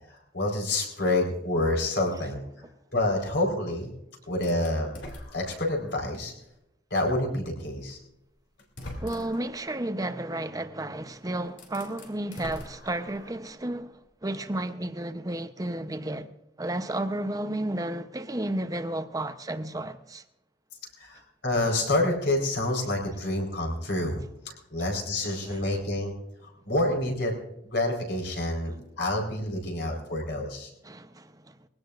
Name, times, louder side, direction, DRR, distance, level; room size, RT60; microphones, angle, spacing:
voice 1, 0.1-2.4 2.9-3.9 4.3-4.9 5.3-6.3 6.9-8.0 21.0-24.2 24.4-26.1 26.4-27.3 27.6-30.7, left 1 dB, 65° left, 4.3 m, -28 dB
sound 1, 4.4-6.0 6.6-6.7 7.9-8.0 8.6-9.6 11.0-11.1 11.5-13.5, left 1 dB, 85° left, 3.0 m, -43 dB
voice 2, 9.0-16.3 16.6-20.2 25.3-25.6 30.8-31.6, right 1 dB, 20° right, 0.8 m, -32 dB
22.0 x 17.0 x 2.5 m
head